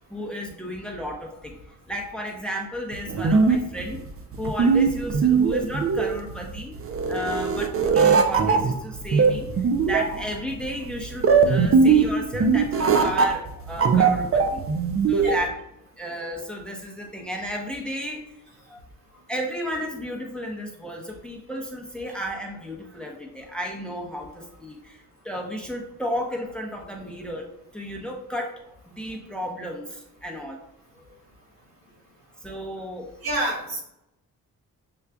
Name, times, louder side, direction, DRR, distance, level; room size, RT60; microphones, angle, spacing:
voice 1, 0.1-1.6 1.9-4.0 4.4-6.8 7.1-14.6 15.1-15.6 16.0-18.2 18.7-18.8 19.3-27.5 27.7-30.6 30.9-31.1 32.4-33.1, equal, 5° left, 1 dB, 0.7 m, -33 dB
sound 1, 2.9-15.5, right 5 dB, 40° right, 0.5 m, -20 dB
voice 2, 33.2-33.8, equal, 85° right, -3 dB, 1.4 m, -27 dB
6.7 x 2.3 x 2.2 m, 0.84 s
cardioid pair, 90°, 35 cm